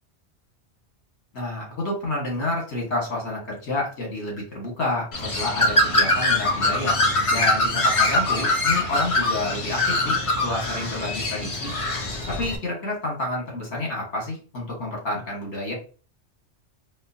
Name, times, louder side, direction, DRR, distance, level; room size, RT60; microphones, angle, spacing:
voice 1, 1.3-7.0 7.3-11.7 12.3-15.7, left 2 dB, 75° left, -2 dB, 1.8 m, -29 dB
Bird, 5.1-12.6, left 1 dB, 35° left, 0.6 m, -23 dB
4.9 x 2.0 x 2.7 m, 0.37 s
omnidirectional pair, 1.2 m